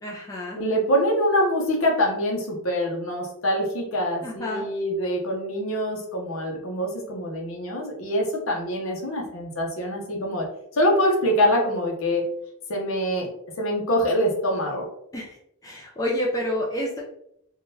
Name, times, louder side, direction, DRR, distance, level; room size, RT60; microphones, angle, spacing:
voice 1, 0.0-0.6 4.2-4.6 15.1-15.4 15.6-17.0, left 1 dB, 15° left, -3 dB, 0.4 m, -29 dB
voice 2, 0.6-10.5 10.7-12.2 12.7-13.3 13.6-14.9, equal, 65° left, -1 dB, 0.7 m, -24 dB
3.6 x 2.2 x 2.6 m, 0.74 s
head